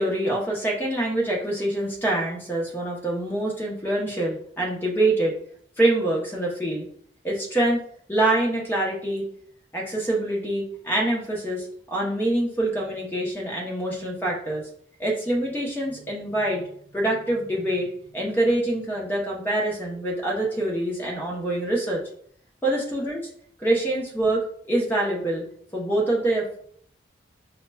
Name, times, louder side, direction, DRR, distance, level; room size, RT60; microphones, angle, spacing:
voice 1, 0.0-5.4 5.8-6.9 7.2-7.8 8.1-9.3 9.7-14.6 15.0-17.9 18.1-22.0 22.6-23.2 23.6-25.4 25.7-26.6, right 1 dB, 10° left, -2 dB, 0.7 m, -25 dB
5.1 x 2.2 x 2.2 m, 0.62 s
head